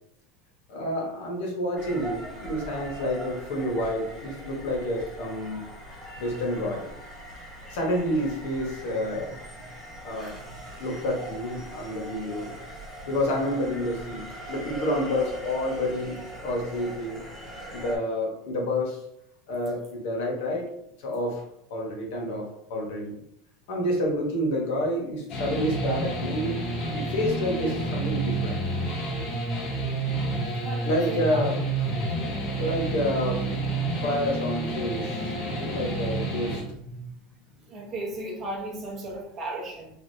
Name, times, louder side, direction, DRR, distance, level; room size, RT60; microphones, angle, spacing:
voice 1, 0.7-5.6 6.2-6.8 7.7-9.4 10.0-10.4 10.8-12.5 13.0-17.2 17.7-19.0 19.5-20.7 21.0-21.4 21.7-23.1 23.7-28.5 30.8-31.7 32.2-33.8 34.0-37.1, left 1 dB, 60° left, 0 dB, 1.0 m, -29 dB
sound 1, 1.8-18.0, right 1 dB, ahead, 0.8 m, -41 dB
sound 2, 25.3-36.6, right 2 dB, 35° left, 0.7 m, -29 dB
voice 2, 30.5-31.4 37.7-39.9, right 1 dB, 25° right, -1 dB, 0.6 m, -35 dB
3.4 x 2.4 x 2.6 m, 0.77 s
supercardioid pair, 180°, 0 cm